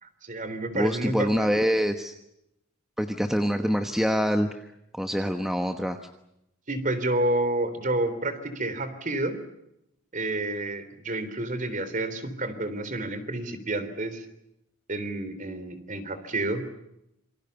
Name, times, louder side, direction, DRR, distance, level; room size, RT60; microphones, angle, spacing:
voice 1, 0.0-1.6 6.7-9.4 10.1-14.3 14.9-16.6, right 2 dB, 35° right, 12 dB, 3.5 m, -29 dB
voice 2, 0.7-2.1 3.0-4.5 4.9-6.0, equal, ahead, 6 dB, 1.2 m, -25 dB
27.5 x 24.5 x 6.9 m, 0.83 s
head